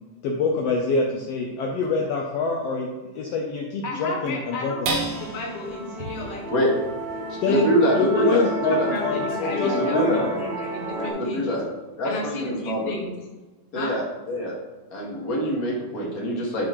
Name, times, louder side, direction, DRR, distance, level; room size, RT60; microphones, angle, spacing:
voice 1, 0.2-2.9 3.1-4.9 7.4-7.7 7.9-10.3, left 3 dB, 85° left, 1 dB, 1.3 m, -25 dB
voice 2, 3.8-6.4 7.4-8.4 8.7-11.6 12.0-13.1 13.7-13.9, left 2 dB, 65° left, -3 dB, 0.5 m, -32 dB
sound 1, 4.8-11.5 12.0-12.1 12.5-13.0, right 3 dB, 90° right, 3.1 m, -37 dB
Musical instrument, 5.1-11.1, right 1 dB, 50° right, 2.0 m, -31 dB
voice 3, 7.3-8.9 9.7-10.2 11.2-11.6 12.0-12.9 13.7-14.5 14.9-16.7, equal, 35° left, -3 dB, 1.6 m, -25 dB
11.5 x 4.4 x 3.8 m, 1.2 s
omnidirectional pair, 3.7 m